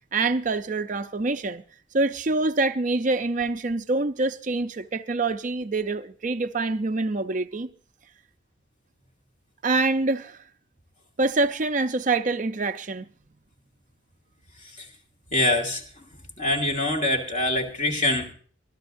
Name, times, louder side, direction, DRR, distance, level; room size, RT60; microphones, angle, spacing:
voice 1, 0.1-1.6 1.9-7.7 9.6-10.4 11.2-13.1, right 3 dB, 40° right, 0.5 m, -25 dB
voice 2, 15.3-15.8 16.4-18.3, left 1 dB, 40° left, 2.4 m, -24 dB
24.0 x 13.0 x 2.6 m
head